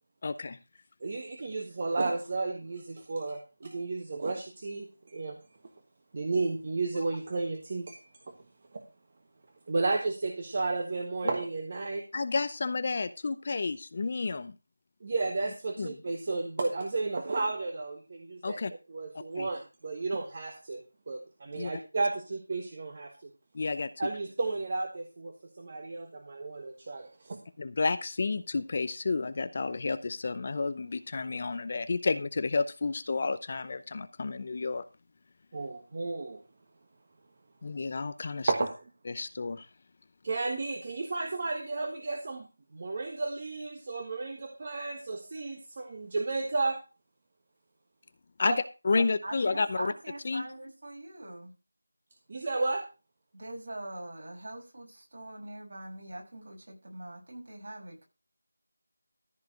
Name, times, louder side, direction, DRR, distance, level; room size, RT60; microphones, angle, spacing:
voice 1, 0.2-0.6 11.2-11.3 12.1-14.5 15.8-16.0 18.4-18.7 19.3-19.5 21.6-21.7 23.5-23.9 27.6-34.8 37.6-38.5 39.1-39.7 48.4-48.6 48.8-49.9 50.2-50.5, left 4 dB, 35° left, 12 dB, 0.6 m, -31 dB
voice 2, 1.0-5.4 6.1-8.0 8.7-8.8 9.7-12.1 15.0-18.6 18.9-23.3 24.0-27.4 35.5-36.4 38.5-38.7 40.2-42.5 42.7-46.8 48.4-48.6 48.9-49.0 52.3-52.8, right 3 dB, 35° right, 4 dB, 1.3 m, -33 dB
voice 3, 49.2-51.5 53.3-58.0, right 1 dB, 55° right, 0 dB, 6.3 m, -42 dB
14.0 x 4.8 x 6.3 m, 0.30 s
figure-of-eight pair, 175°, 0 cm